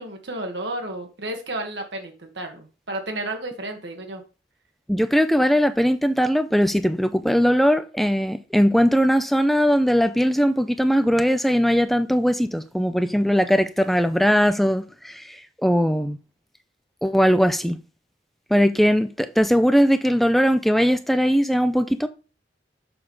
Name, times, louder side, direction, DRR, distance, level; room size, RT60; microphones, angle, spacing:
voice 1, 0.0-4.2, right 1 dB, 70° right, 1.7 m, -32 dB
voice 2, 4.9-16.2 17.0-17.8 18.5-22.1, equal, ahead, 0.5 m, -20 dB
6.9 x 5.0 x 5.5 m
head